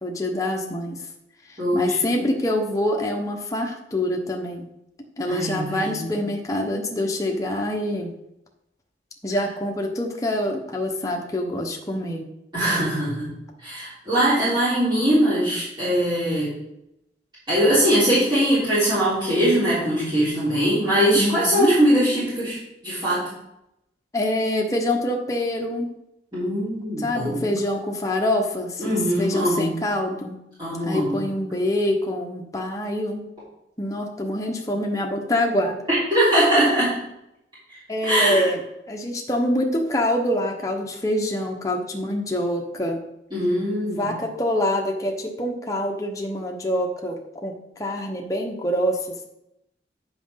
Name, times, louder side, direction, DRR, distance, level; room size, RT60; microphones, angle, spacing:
voice 1, 0.0-1.0 1.5-4.7 5.2-8.1 9.2-12.2 21.1-21.7 24.1-25.9 27.0-28.9 29.2-30.4 30.9-33.2 33.8-35.8 37.9-38.6 38.9-43.0 43.8-49.2, left 1 dB, 20° left, 1 dB, 1.0 m, -25 dB
voice 2, 1.6-2.2 5.3-6.2 12.5-13.3 13.6-16.5 17.5-22.6 22.8-23.3 26.3-27.5 28.8-29.8 30.6-31.2 35.9-36.9 37.7-38.5 43.3-44.1, equal, 25° right, -12 dB, 3.5 m, -21 dB
8.9 x 5.9 x 5.7 m, 0.84 s
head